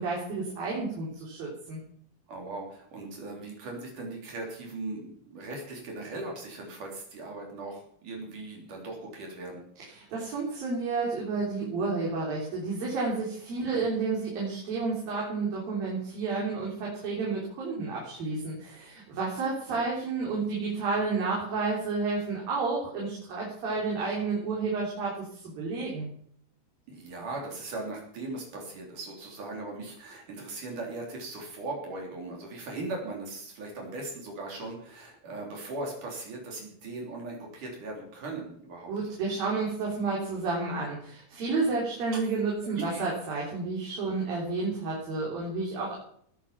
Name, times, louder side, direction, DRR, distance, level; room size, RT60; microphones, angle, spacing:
voice 1, 0.0-1.8 9.9-26.1 38.9-46.0, right 4 dB, 80° right, -4 dB, 5.4 m, -31 dB
voice 2, 2.3-10.1 13.6-13.8 19.7-19.8 26.9-38.9 42.1-42.2 42.6-43.1, right 2 dB, 60° right, 0 dB, 4.8 m, -39 dB
19.5 x 9.2 x 5.9 m, 0.64 s
omnidirectional pair, 4.0 m